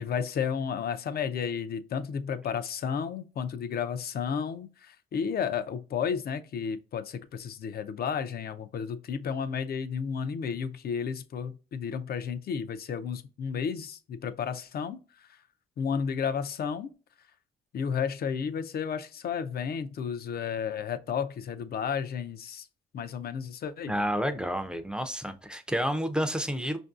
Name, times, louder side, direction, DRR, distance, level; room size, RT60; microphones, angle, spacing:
voice 1, 0.0-15.4 15.8-16.9 17.7-22.7 22.9-24.0, left 7 dB, 50° left, 0.5 m, -32 dB
voice 2, 23.9-26.8, equal, 5° right, 0.5 m, -30 dB
5.1 x 2.6 x 2.4 m
cardioid pair, 90°, 20 cm